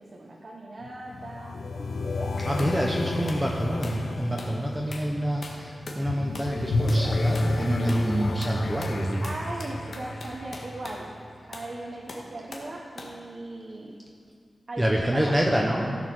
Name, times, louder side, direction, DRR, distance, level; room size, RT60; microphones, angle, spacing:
voice 1, 0.0-1.6 1.9-2.3 9.2-11.1 11.5-14.0 14.7-15.3, right 2 dB, 40° right, -2 dB, 1.1 m, -38 dB
sound 1, 0.8-11.6, left 2 dB, 90° left, 0.9 m, -31 dB
voice 2, 2.4-9.2 14.8-15.9, right 1 dB, 10° right, -1 dB, 0.9 m, -27 dB
sound 2, 2.6-2.8 3.3-3.5 3.8-4.1 4.4-4.6 4.9-5.1 5.4-6.1 6.3-6.6 6.9-7.1 7.3-7.5 7.9-8.1 8.4-11.0 11.5-11.7 12.1-12.7 13.0-13.2, left 2 dB, 70° left, 1.6 m, -42 dB
15.0 x 7.2 x 6.0 m, 2.2 s
wide cardioid pair, 145°, 0 cm